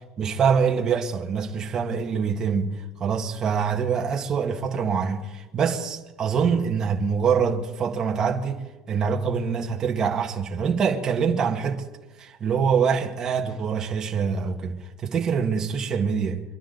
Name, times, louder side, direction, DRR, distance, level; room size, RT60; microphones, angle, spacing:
voice 1, 0.2-11.8 12.2-16.4, right 6 dB, 25° right, 1.7 m, -25 dB
24.5 x 12.0 x 4.0 m
cardioid pair, 140°, 2 cm